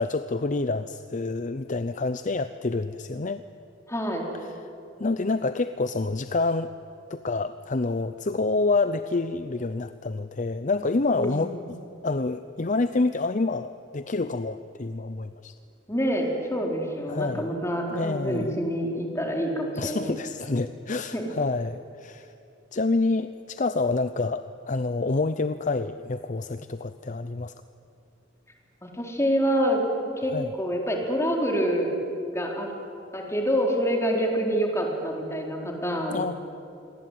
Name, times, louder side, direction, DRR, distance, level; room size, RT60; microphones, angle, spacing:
voice 1, 0.0-3.4 4.4-4.5 5.0-6.7 7.1-11.8 12.0-15.5 17.1-17.5 17.9-18.6 19.8-22.3 22.7-27.5 30.3-30.5 36.1-36.3, left 3 dB, 40° left, 11 dB, 0.7 m, -27 dB
voice 2, 3.9-4.3 11.2-11.6 15.9-20.2 21.1-21.3 28.8-31.9 32.3-32.7 33.1-36.4, equal, 15° left, 1 dB, 4.3 m, -27 dB
28.0 x 23.0 x 9.3 m, 2.7 s
head